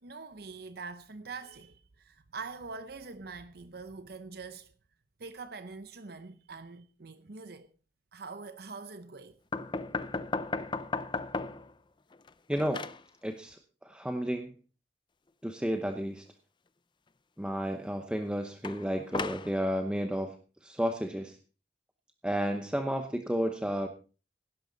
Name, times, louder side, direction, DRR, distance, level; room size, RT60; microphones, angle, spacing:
voice 1, 0.0-4.7 5.2-7.7 8.1-9.4, right 4 dB, 60° right, 0.8 m, -44 dB
sound 1, 9.5-11.7 12.1-13.0 18.6-19.5, left 3 dB, 25° left, 0.6 m, -35 dB
voice 2, 12.5-12.8 13.2-13.6 13.8-14.5 15.4-16.2 17.4-20.3 20.6-21.4 22.2-23.9, equal, 5° right, 0.8 m, -32 dB
16.5 x 11.5 x 4.0 m
head